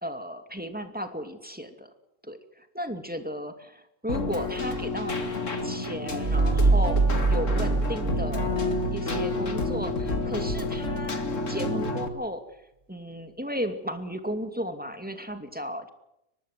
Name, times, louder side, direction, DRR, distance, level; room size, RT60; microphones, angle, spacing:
voice 1, 0.0-1.9 2.2-7.0 7.3-12.4 12.9-15.9, equal, 5° right, 7 dB, 2.4 m, -35 dB
Keyboard (musical), 4.1-12.1, left 2 dB, 45° left, 2.4 m, -30 dB
sound 1, 6.2-9.6, right 3 dB, 30° right, 1.1 m, -24 dB
23.5 x 20.0 x 7.9 m, 0.82 s
omnidirectional pair, 1.9 m